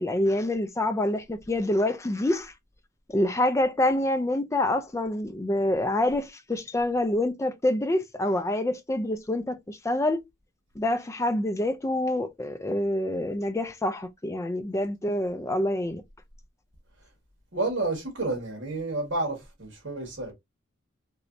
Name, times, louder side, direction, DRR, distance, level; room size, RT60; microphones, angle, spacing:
voice 1, 0.0-2.5 3.1-10.2 10.8-16.0, left 1 dB, 15° left, 0.3 m, -26 dB
voice 2, 17.5-20.3, right 2 dB, 60° right, 1.6 m, -30 dB
3.2 x 2.9 x 2.5 m
head